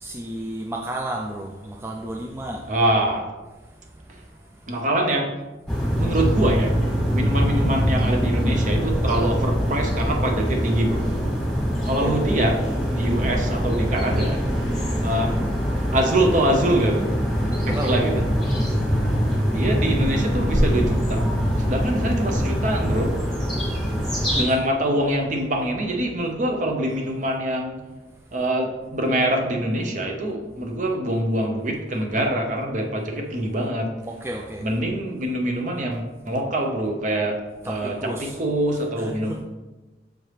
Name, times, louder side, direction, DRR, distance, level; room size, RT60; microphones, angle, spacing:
voice 1, 0.0-2.7 6.0-6.3 11.9-12.4 17.6-17.9 19.1-19.5 24.3-24.5 34.1-34.7 37.6-38.4 39.0-39.4, right 1 dB, 15° right, 0.3 m, -33 dB
voice 2, 2.7-3.3 4.7-5.4 6.0-6.8 7.1-11.2 11.8-14.5 15.0-15.4 15.9-17.1 17.6-18.3 19.5-21.3 21.6-23.2 24.3-27.8 28.3-34.0 34.6-39.4, right 1 dB, 45° right, 0.7 m, -24 dB
sound 1, 5.7-24.4, equal, 5° left, 1.5 m, -23 dB
6.4 x 4.5 x 3.3 m
head